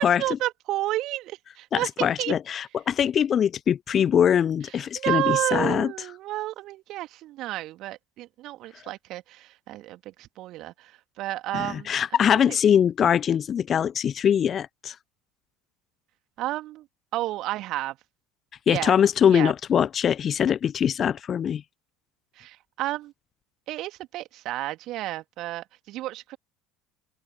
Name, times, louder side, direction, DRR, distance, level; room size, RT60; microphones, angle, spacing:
voice 1, 0.0-2.3 4.7-11.9 12.3-12.6 16.4-16.9 17.1-18.0 18.7-19.0 19.3-19.5 22.3-23.1 23.7-26.4, right 16 dB, 50° right, 2.5 m, -31 dB
voice 2, 1.7-5.9 11.5-15.0 18.7-21.6, left 8 dB, 35° left, 0.4 m, -22 dB
figure-of-eight pair, 65°, 0 cm